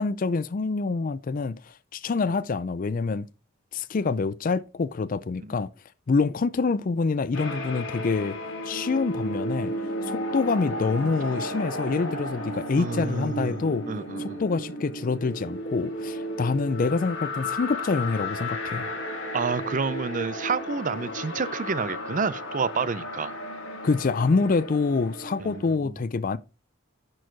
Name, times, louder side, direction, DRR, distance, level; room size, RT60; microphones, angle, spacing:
voice 1, 0.0-3.3 3.7-5.7 6.1-8.4 8.6-9.7 10.1-13.9 14.2-18.9 23.8-26.4, left 4 dB, 40° left, 0.4 m, -26 dB
sound 1, 7.3-25.7, equal, 60° left, 2.0 m, -34 dB
voice 2, 12.8-14.4 19.3-23.4 25.4-26.0, right 5 dB, 40° right, 0.5 m, -29 dB
10.5 x 4.7 x 4.5 m
head